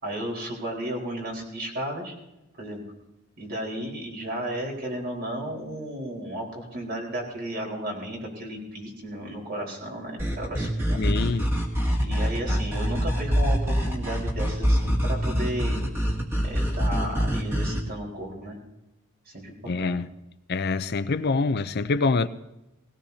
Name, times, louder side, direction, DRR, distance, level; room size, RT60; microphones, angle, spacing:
voice 1, 0.0-2.2 2.6-2.8 3.4-11.2 12.0-15.8 16.4-18.6 19.3-20.0, right 1 dB, 50° right, 4.5 m, -34 dB
sound 1, 10.2-17.8, equal, 10° right, 2.0 m, -25 dB
voice 2, 10.9-11.5 12.5-12.6 19.7-20.1 20.5-22.3, left 3 dB, 50° left, 0.5 m, -25 dB
19.5 x 17.5 x 2.8 m
head